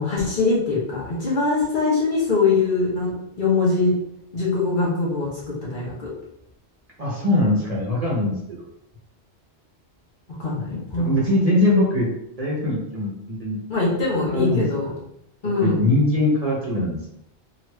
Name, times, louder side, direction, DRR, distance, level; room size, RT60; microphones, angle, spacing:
voice 1, 0.0-3.9 4.3-6.1 10.4-11.3 13.7-14.9 15.4-15.8, left 3 dB, 45° left, -5 dB, 1.0 m, -22 dB
voice 2, 7.0-8.6 11.0-12.1 12.4-13.6 14.3-14.9 15.6-17.1, left 1 dB, 40° right, -5 dB, 0.7 m, -22 dB
3.0 x 2.5 x 3.1 m, 0.77 s
omnidirectional pair, 1.2 m